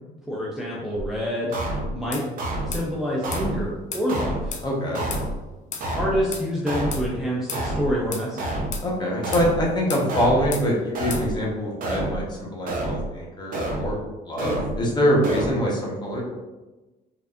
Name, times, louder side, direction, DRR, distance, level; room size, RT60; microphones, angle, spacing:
voice 1, 0.3-1.6 1.9-2.4 2.6-4.5 5.9-8.6, equal, ahead, -5 dB, 0.6 m, -27 dB
sound 1, 1.0-1.1 1.5-1.9 2.4-2.8 3.2-3.7 4.1-4.5 4.9-5.4 5.8-6.2 6.7-7.1 7.5-7.9 8.4-8.8 9.2-9.7 10.1-10.5 10.9-11.4 11.8-12.2 12.7-13.1 13.5-13.9 14.4-14.8 15.2-15.5, right 1 dB, 55° right, 0.8 m, -28 dB
sound 2, 2.1-2.3 2.7-2.9 3.3-3.5 3.9-4.1 4.5-4.7 5.1-5.3 5.7-5.9 6.3-6.5 6.9-7.1 7.5-7.7 8.1-8.3 8.7-8.9 9.3-9.5 9.9-10.1 10.5-10.7 11.1-11.3, left 6 dB, 45° left, 0.6 m, -33 dB
voice 2, 4.6-5.0 8.8-14.0 14.3-16.2, equal, 25° left, -3 dB, 1.0 m, -24 dB
4.6 x 2.6 x 2.5 m, 1.1 s
cardioid pair, 110°, 17 cm